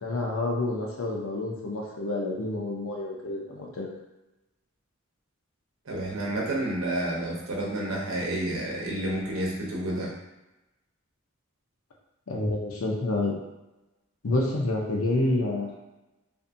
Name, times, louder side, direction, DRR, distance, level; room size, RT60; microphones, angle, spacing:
voice 1, 0.0-3.9 12.3-13.4 14.2-15.7, left 2 dB, 80° left, -1 dB, 0.6 m, -28 dB
voice 2, 5.9-10.1, right 1 dB, 75° right, -3 dB, 0.7 m, -30 dB
2.6 x 2.5 x 2.6 m, 0.98 s
head